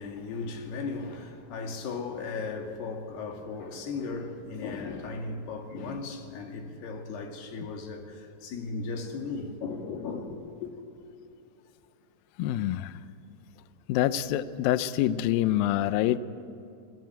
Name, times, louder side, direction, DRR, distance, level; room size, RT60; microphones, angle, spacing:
voice 1, 0.0-10.7, left 4 dB, 65° left, 4.3 m, -36 dB
voice 2, 12.4-12.9 13.9-16.2, left 13 dB, 90° left, 2.0 m, -26 dB
27.5 x 18.5 x 8.9 m
omnidirectional pair, 5.1 m